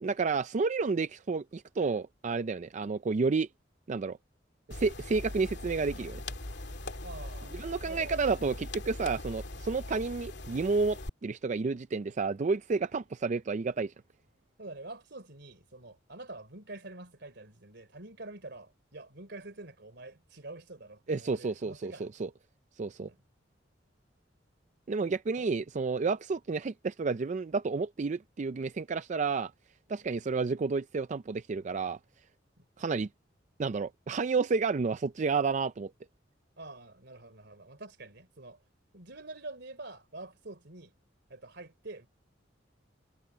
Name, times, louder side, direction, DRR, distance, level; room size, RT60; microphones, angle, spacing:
voice 1, 0.0-3.5 3.9-4.2 4.7-6.2 7.5-13.9 21.1-22.3 22.8-23.1 24.9-29.5 29.9-32.0 32.8-33.1 33.6-35.9, right 4 dB, 40° right, 0.4 m, -30 dB
sound 1, 4.7-11.1, left 2 dB, 65° left, 2.5 m, -41 dB
voice 2, 7.0-8.3 14.6-22.1 23.1-23.2 25.4-25.5 29.9-30.1 32.6-32.7 36.6-38.6 38.9-40.9 41.3-42.1, right 2 dB, 65° right, 3.4 m, -46 dB
head